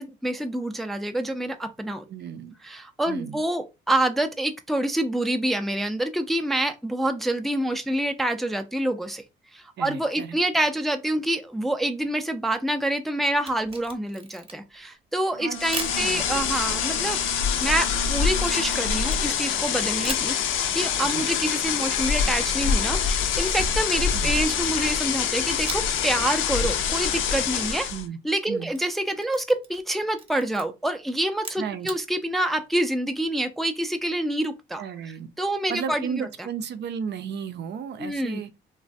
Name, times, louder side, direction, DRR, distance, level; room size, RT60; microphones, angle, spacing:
voice 1, 0.0-2.0 2.6-9.2 9.5-17.2 17.6-27.9 28.2-34.8 35.4-36.3 38.0-38.4, right 1 dB, ahead, 0.4 m, -27 dB
voice 2, 2.1-2.6 3.1-3.4 9.8-10.4 15.4-15.6 15.9-16.3 21.0-21.3 24.1-24.4 27.9-28.2 28.5-28.7 31.6-31.9 34.8-35.3 35.7-38.5, right 7 dB, 60° right, 0.5 m, -34 dB
Camera, 13.3-14.8 15.7-16.0 18.5-19.6 20.0-20.3 23.0-24.5 25.6-26.1 26.4-26.5 28.5-29.9 30.1-30.6 31.3-32.0, right 3 dB, 25° right, 0.7 m, -38 dB
Bowed string instrument, 15.3-19.4, right 6 dB, 85° right, 0.9 m, -39 dB
sound 1, 15.5-28.1, left 7 dB, 80° left, 0.5 m, -25 dB
3.2 x 2.1 x 2.5 m
cardioid pair, 90°, 20 cm